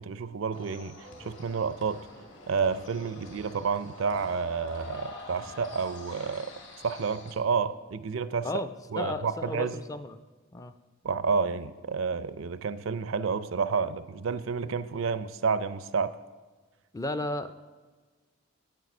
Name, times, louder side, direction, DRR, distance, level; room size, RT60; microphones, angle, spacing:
voice 1, 0.0-2.0 2.5-6.5 6.8-8.5 8.9-9.8 11.0-16.2, right 5 dB, 70° right, 14 dB, 0.5 m, -30 dB
sound 1, 0.5-7.3, left 2 dB, 60° left, 2.0 m, -46 dB
voice 2, 9.0-10.2 10.5-10.7 16.9-17.5, left 2 dB, 15° left, 9 dB, 0.4 m, -33 dB
9.2 x 8.7 x 6.1 m, 1.3 s
head